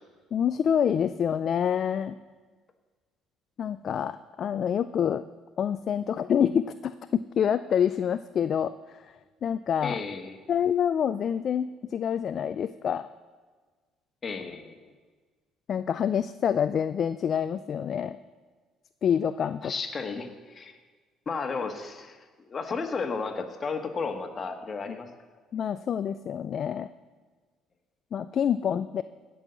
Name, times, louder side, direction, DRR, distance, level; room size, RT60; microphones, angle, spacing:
voice 1, 0.3-2.2 3.6-5.2 5.6-9.0 9.4-10.0 10.5-13.1 15.7-18.2 19.0-19.7 24.9-25.0 25.5-26.9 28.1-29.0, left 8 dB, 50° left, 12 dB, 0.4 m, -27 dB
voice 2, 9.8-10.6 14.2-14.9 19.6-20.8 21.2-25.1, left 4 dB, 35° left, 5 dB, 1.5 m, -34 dB
15.5 x 5.6 x 8.1 m, 1.4 s
cardioid pair, 100°, 0 cm